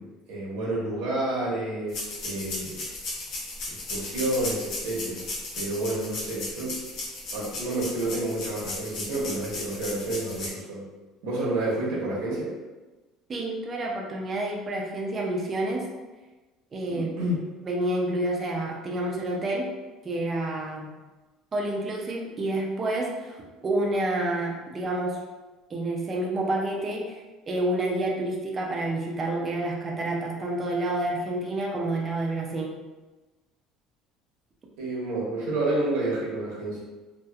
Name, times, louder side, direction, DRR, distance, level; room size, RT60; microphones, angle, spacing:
voice 1, 0.0-2.9 3.7-5.3 5.5-6.8 7.3-10.9 11.2-12.6 16.9-17.4 34.8-36.8, right 2 dB, 90° right, -5 dB, 0.8 m, -29 dB
sound 1, 1.9-10.5, left 2 dB, 45° left, 0.6 m, -36 dB
voice 2, 13.3-15.8 16.7-17.2 17.6-19.7 20.0-20.9 21.5-25.2 25.7-32.8, right 1 dB, 20° right, -1 dB, 0.3 m, -29 dB
2.7 x 2.0 x 2.3 m, 1.2 s
cardioid pair, 180°, 0 cm